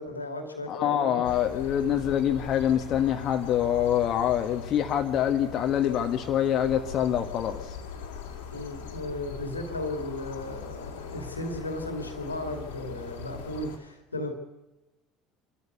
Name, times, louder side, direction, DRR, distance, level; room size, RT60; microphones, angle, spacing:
voice 1, 0.0-1.3 8.5-14.3, left 1 dB, 85° left, 2.6 m, -35 dB
voice 2, 0.7-7.8, left 10 dB, 45° left, 1.5 m, -25 dB
sound 1, 1.2-13.8, left 6 dB, 65° left, 2.3 m, -41 dB
26.0 x 13.5 x 8.2 m
figure-of-eight pair, 65°, 0 cm